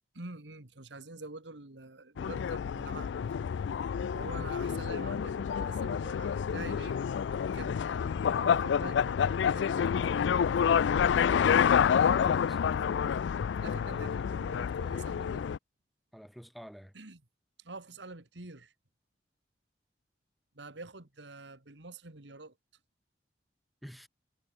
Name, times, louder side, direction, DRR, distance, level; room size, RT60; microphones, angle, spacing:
voice 1, 0.1-3.1 4.1-7.0 7.5-7.8 8.2-11.1 12.0-13.2 13.6-15.5 16.9-17.2 17.6-18.7 20.6-22.5, right 3 dB, 85° right, 2.1 m, -46 dB
sound 1, 2.2-15.6, left 7 dB, 85° left, 0.3 m, -28 dB
voice 2, 12.0-12.6 13.9-14.3 14.8-15.0 16.1-16.9 23.8-24.1, equal, ahead, 1.9 m, -49 dB
head